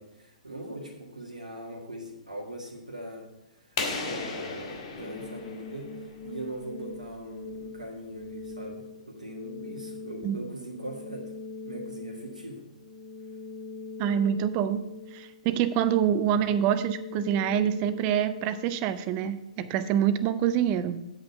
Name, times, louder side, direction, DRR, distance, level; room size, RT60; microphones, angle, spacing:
voice 1, 0.0-3.8 4.0-11.3 11.6-12.6, right 1 dB, 85° right, 0 dB, 1.7 m, -41 dB
sound 1, 3.8-6.4, left 4 dB, 50° left, 1.8 m, -35 dB
sound 2, 5.0-20.0, left 3 dB, 35° left, 1.1 m, -42 dB
voice 2, 14.0-14.8 15.1-21.0, right 9 dB, 30° right, 12 dB, 0.6 m, -26 dB
8.1 x 7.8 x 4.5 m, 0.90 s
figure-of-eight pair, 115°, 4 cm